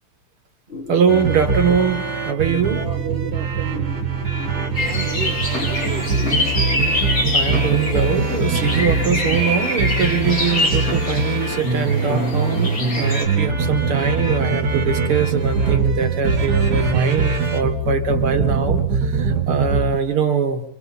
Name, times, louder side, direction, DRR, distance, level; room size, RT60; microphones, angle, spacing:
sound 1, 0.7-19.5, left 3 dB, 25° left, 3.0 m, -39 dB
voice 1, 0.9-2.8 7.3-20.6, right 6 dB, 80° right, 7 dB, 2.5 m, -22 dB
sound 2, 1.1-20.0, right 4 dB, 50° right, 2.3 m, -22 dB
voice 2, 2.7-4.0 4.8-5.4 5.7-6.4, right 5 dB, 30° right, 4 dB, 1.5 m, -31 dB
sound 3, 4.7-13.2, left 2 dB, 45° left, 3.7 m, -25 dB
27.5 x 24.5 x 4.2 m, 0.70 s
omnidirectional pair, 2.4 m